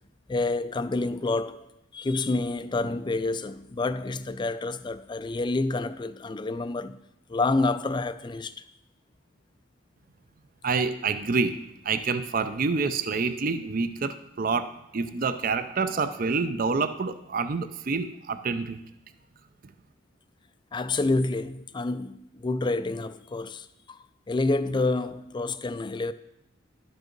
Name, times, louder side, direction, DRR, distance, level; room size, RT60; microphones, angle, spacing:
voice 1, 0.3-1.7 1.9-7.0 7.3-8.6 20.7-26.1, left 2 dB, 25° left, 0.3 m, -28 dB
voice 2, 10.6-18.8, right 4 dB, 45° right, 0.5 m, -27 dB
12.0 x 6.3 x 5.2 m
head